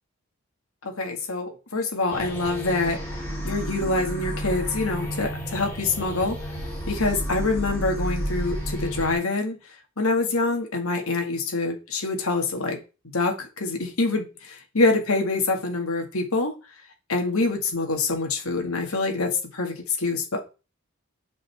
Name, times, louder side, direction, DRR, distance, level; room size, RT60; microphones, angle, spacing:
voice 1, 0.8-3.0 3.4-9.6 10.0-12.8 13.0-16.5 17.1-20.4, left 3 dB, 80° left, 3 dB, 2.1 m, -25 dB
sound 1, 2.1-9.2, equal, 10° left, 3.3 m, -31 dB
7.7 x 5.4 x 3.6 m, 0.31 s
head